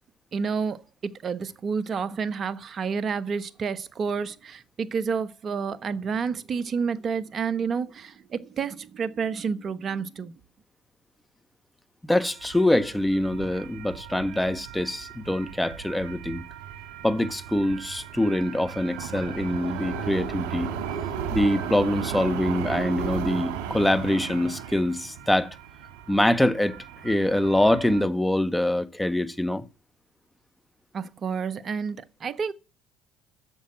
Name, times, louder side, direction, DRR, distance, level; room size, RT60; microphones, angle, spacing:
voice 1, 0.3-10.3 30.9-32.5, right 5 dB, 45° right, 1.1 m, -29 dB
voice 2, 12.0-16.4 17.0-20.7 21.3-25.6 26.1-26.8 27.0-29.6, left 1 dB, 5° left, 1.3 m, -24 dB
sound 1, 12.2-28.0, right 8 dB, 80° right, 2.4 m, -35 dB
10.5 x 7.2 x 8.9 m
supercardioid pair, 75°, 0 cm